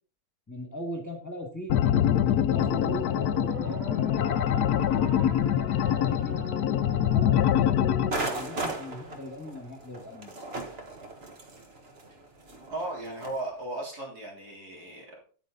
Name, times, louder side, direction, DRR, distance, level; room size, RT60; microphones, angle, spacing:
voice 1, 0.5-3.8 4.5-6.5 7.1-7.8 8.1-10.4, left 1 dB, 10° left, 3 dB, 1.7 m, -40 dB
sound 1, 1.7-8.1, left 10 dB, 75° left, 1.1 m, -24 dB
sound 2, 2.5-9.1, right 1 dB, 25° right, 4.4 m, -40 dB
sound 3, 8.1-13.4, right 2 dB, 40° right, 1.5 m, -36 dB
voice 2, 12.7-15.2, right 2 dB, 75° right, -1 dB, 4.0 m, -36 dB
9.7 x 8.9 x 4.0 m, 0.41 s
omnidirectional pair, 1.7 m